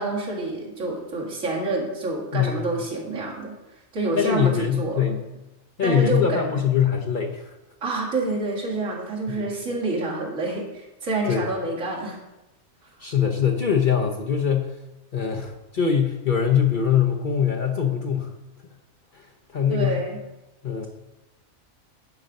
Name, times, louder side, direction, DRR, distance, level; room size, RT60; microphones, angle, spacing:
voice 1, 0.0-3.5 3.9-5.2 5.8-6.4 7.8-12.2 19.7-20.2, right 2 dB, 70° right, -4 dB, 2.5 m, -28 dB
voice 2, 2.3-2.7 4.2-5.2 5.8-7.5 9.3-9.4 11.2-11.5 13.0-14.8 15.1-18.3 19.1-19.3 19.5-20.0 20.6-20.9, left 7 dB, 45° left, 2 dB, 0.8 m, -23 dB
10.5 x 5.1 x 5.2 m, 0.98 s
omnidirectional pair, 1.4 m